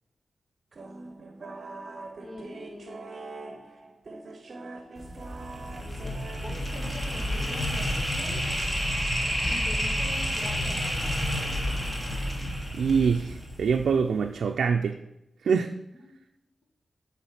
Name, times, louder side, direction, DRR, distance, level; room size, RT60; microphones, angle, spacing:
sound 1, 0.7-8.1, right 3 dB, 50° right, 0.8 m, -43 dB
voice 1, 2.2-3.7 4.1-4.8 5.4-6.1 6.4-8.4 9.5-11.3 15.9-16.1, left 1 dB, 50° left, 0 dB, 1.6 m, -45 dB
sound 2, 5.0-14.1, equal, 15° left, 1.3 m, -30 dB
voice 2, 12.8-15.0 15.4-15.7, right 6 dB, 90° right, 4 dB, 0.3 m, -24 dB
6.9 x 3.9 x 5.8 m, 0.89 s
wide cardioid pair, 110°, 0 cm